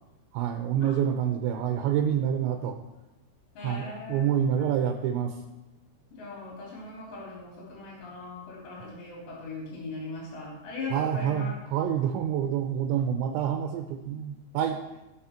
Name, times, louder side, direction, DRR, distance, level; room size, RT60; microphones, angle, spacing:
voice 1, 0.3-2.8 3.6-5.4 10.9-14.8, right 9 dB, 75° right, 5 dB, 2.9 m, -27 dB
voice 2, 3.5-4.3 4.5-4.7 6.1-11.6, left 3 dB, 60° left, -4 dB, 5.3 m, -39 dB
19.0 x 6.5 x 4.4 m, 1.0 s
omnidirectional pair, 5.6 m